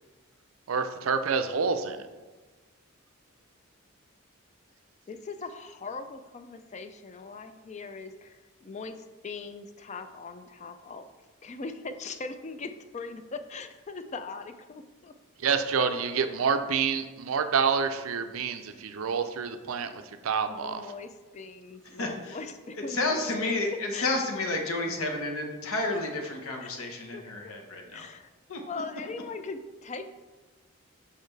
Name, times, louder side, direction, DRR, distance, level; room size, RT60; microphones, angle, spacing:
voice 1, 0.7-2.0 15.4-20.9, right 6 dB, 70° right, 9 dB, 0.5 m, -28 dB
voice 2, 5.1-11.1 11.4-15.1 20.5-22.5 22.8-23.2 23.7-24.1 26.6-26.7 27.1-27.3 27.9-28.3 28.7-30.1, left 4 dB, 30° left, 9 dB, 0.4 m, -40 dB
voice 3, 22.0-22.4 23.0-28.0 28.5-28.6, left 2 dB, 75° left, 2 dB, 0.9 m, -30 dB
6.6 x 5.6 x 3.2 m, 1.3 s
head